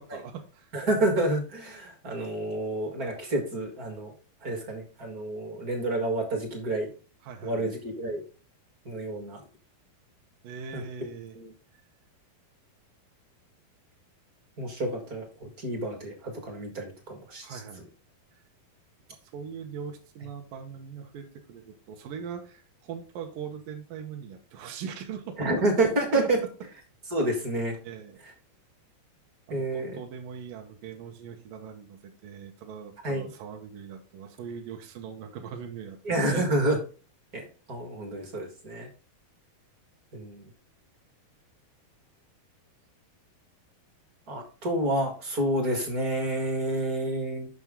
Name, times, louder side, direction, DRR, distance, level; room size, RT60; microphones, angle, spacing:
voice 1, 0.0-0.7 7.2-7.7 10.4-11.4 17.4-17.9 19.3-25.5 26.1-26.3 27.8-28.2 29.5-36.6, right 7 dB, 70° right, 3 dB, 2.4 m, -41 dB
voice 2, 0.7-4.1 4.4-6.9 7.4-8.2 8.8-9.4 10.7-10.8 11.3-11.5 14.6-17.6 25.4-26.4 27.1-27.8 29.5-30.0 33.0-33.3 36.0-36.8 37.3-38.9 40.1-40.5 44.3-47.5, right 1 dB, 40° right, 2 dB, 1.3 m, -29 dB
8.2 x 6.1 x 3.6 m, 0.35 s
omnidirectional pair, 4.4 m